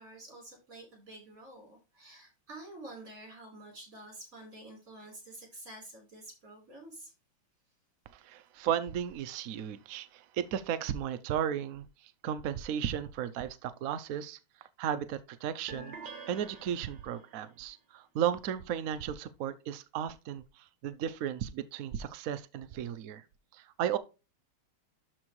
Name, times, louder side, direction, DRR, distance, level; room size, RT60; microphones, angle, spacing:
voice 1, 0.0-7.1, right 2 dB, 40° right, 4.6 m, -49 dB
voice 2, 8.1-14.4 14.8-15.9 16.3-23.2 23.5-24.0, right 9 dB, 90° right, 0.7 m, -35 dB
sound 1, 15.7-17.4, right 4 dB, 55° right, 1.8 m, -47 dB
12.0 x 4.4 x 3.1 m
omnidirectional pair, 2.3 m